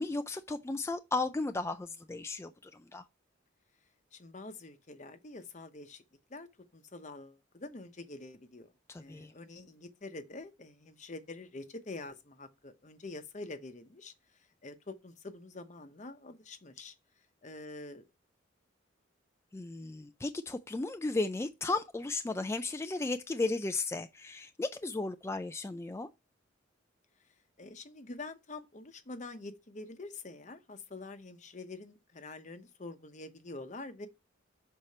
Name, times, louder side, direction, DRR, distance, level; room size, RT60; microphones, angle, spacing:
voice 1, 0.0-3.0 8.9-9.3 19.5-26.1, left 3 dB, 15° left, 0.3 m, -35 dB
voice 2, 4.1-6.0 6.3-8.7 9.0-14.1 14.6-16.9 17.4-18.1 27.6-34.1, left 2 dB, 40° left, 0.9 m, -46 dB
6.6 x 4.4 x 4.1 m
head